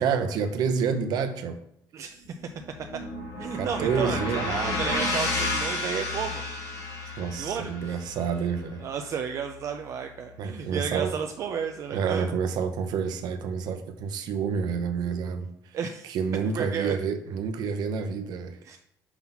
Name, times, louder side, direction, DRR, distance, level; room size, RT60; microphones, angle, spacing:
voice 1, 0.0-1.6 3.5-4.5 7.2-8.8 10.4-11.1 11.9-15.5 16.0-18.6, right 6 dB, 70° right, 7 dB, 0.8 m, -28 dB
voice 2, 1.9-2.2 3.4-6.4 7.4-8.0 8.8-12.3 15.7-16.1 16.5-16.9 18.6-18.8, right 7 dB, 45° right, 5 dB, 0.4 m, -32 dB
sound 1, 2.2-10.5, left 2 dB, 50° left, 1.9 m, -32 dB
5.9 x 4.0 x 5.6 m, 0.74 s
cardioid pair, 165°, 7 cm